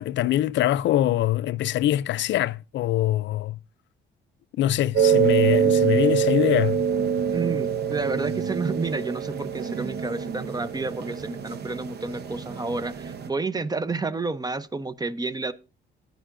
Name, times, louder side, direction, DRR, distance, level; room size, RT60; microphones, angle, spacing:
voice 1, 0.0-3.6 4.6-6.8, left 13 dB, 70° left, 0.4 m, -23 dB
sound 1, 4.9-13.3, right 7 dB, 55° right, 0.8 m, -25 dB
voice 2, 7.3-15.5, right 3 dB, 20° right, 0.7 m, -30 dB
12.5 x 9.3 x 2.5 m
cardioid pair, 90°, 20 cm